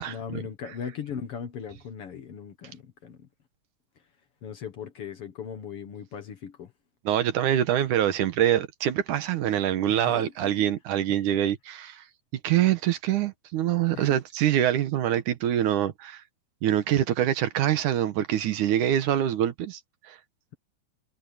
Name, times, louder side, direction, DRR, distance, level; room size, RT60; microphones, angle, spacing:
voice 1, 0.0-3.3 4.4-6.7 9.9-10.7 13.9-14.2, left 7 dB, 55° left, 2.1 m, -38 dB
voice 2, 7.1-12.0 12.4-16.2 16.6-20.2, right 11 dB, 75° right, 2.6 m, -25 dB
omnidirectional pair, 3.6 m